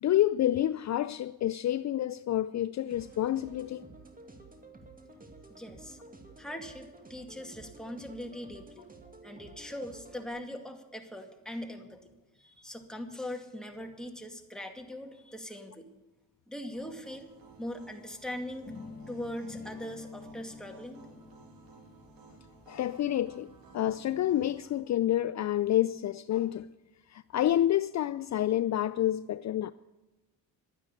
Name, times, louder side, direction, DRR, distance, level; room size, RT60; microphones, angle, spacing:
voice 1, 0.0-3.9 22.7-23.5 23.7-26.7 27.1-29.7, left 12 dB, 55° left, 0.4 m, -28 dB
sound 1, 2.9-10.3, right 3 dB, 25° right, 2.3 m, -52 dB
voice 2, 5.5-6.0 6.4-8.9 9.2-12.1 12.4-15.9 16.5-17.3 17.6-18.7 19.1-21.0, left 1 dB, ahead, 2.2 m, -41 dB
sound 2, 16.7-24.6, right 4 dB, 85° right, 2.5 m, -56 dB
sound 3, 18.7-24.6, left 4 dB, 25° left, 1.3 m, -49 dB
12.0 x 9.7 x 8.4 m
cardioid pair, 75°, 35 cm